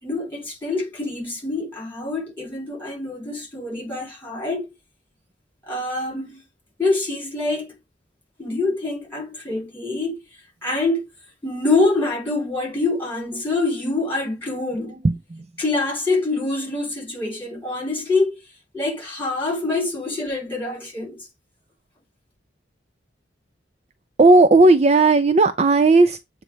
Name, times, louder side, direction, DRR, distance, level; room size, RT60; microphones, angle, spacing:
voice 1, 0.0-4.7 5.6-6.4 6.8-7.7 8.4-10.2 10.6-11.1 11.4-14.9 15.6-18.3 18.7-21.3, left 3 dB, 10° left, 4.8 m, -25 dB
voice 2, 15.0-15.4 24.2-26.2, right 3 dB, 35° right, 0.4 m, -14 dB
7.8 x 3.2 x 5.0 m
head